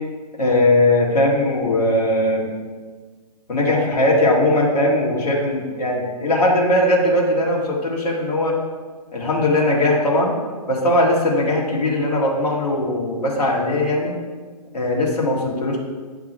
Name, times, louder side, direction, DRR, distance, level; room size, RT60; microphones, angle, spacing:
voice 1, 0.4-2.5 3.5-8.5 9.1-10.3 10.7-14.1 14.7-15.8, left 1 dB, 75° left, -4 dB, 2.4 m, -19 dB
9.7 x 5.8 x 4.5 m, 1.5 s
hypercardioid pair, 150°, 21 cm